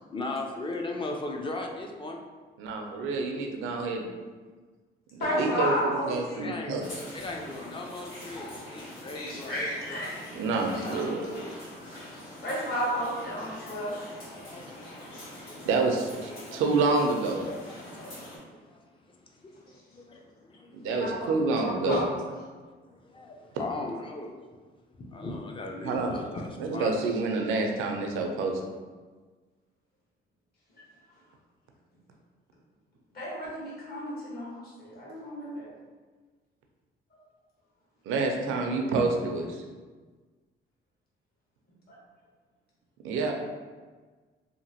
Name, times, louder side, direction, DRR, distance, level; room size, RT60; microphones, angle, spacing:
voice 1, 0.1-2.2 5.3-5.9 6.3-6.8 7.1-9.6 12.4-12.5 13.3-13.4 13.7-15.7 16.3-16.6 17.4-20.8 22.8-24.3 25.0-27.2, left 2 dB, 25° left, 1 dB, 0.4 m, -39 dB
voice 2, 2.6-4.1 5.1-6.8 10.3-11.2 15.7-17.4 20.7-22.0 25.8-26.1 26.6-28.6 38.1-39.6 43.0-43.3, right 3 dB, 85° right, 2 dB, 0.5 m, -28 dB
voice 3, 5.2-6.5 9.1-10.1 10.7-11.6 12.4-13.9 20.8-21.3 21.6-22.0 33.1-35.7 41.9-42.0, equal, 50° left, -6 dB, 1.2 m, -32 dB
sound 1, 6.8-18.4, left 1 dB, 75° left, 1.5 m, -44 dB
2.9 x 2.5 x 2.7 m, 1.4 s
cardioid pair, 90°, 20 cm